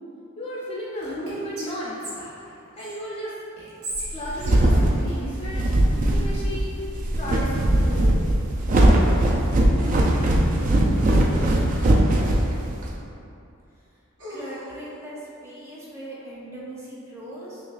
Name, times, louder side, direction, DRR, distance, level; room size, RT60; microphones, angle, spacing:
voice 1, 0.4-2.0 2.8-3.3 4.1-5.6 5.9-6.7 7.1-8.2, equal, 25° left, -6 dB, 0.4 m, -33 dB
Whispering, 1.0-3.0 3.6-5.7, right 1 dB, 85° right, 1.1 m, -38 dB
sound 1, 4.0-12.9, right 1 dB, 40° right, 0.3 m, -20 dB
sound 2, 9.8-10.7 12.6-12.7 14.2-14.9, equal, 60° right, 0.8 m, -39 dB
voice 2, 14.3-17.6, right 1 dB, 15° right, -7 dB, 0.7 m, -39 dB
5.8 x 2.4 x 2.3 m, 2.7 s
head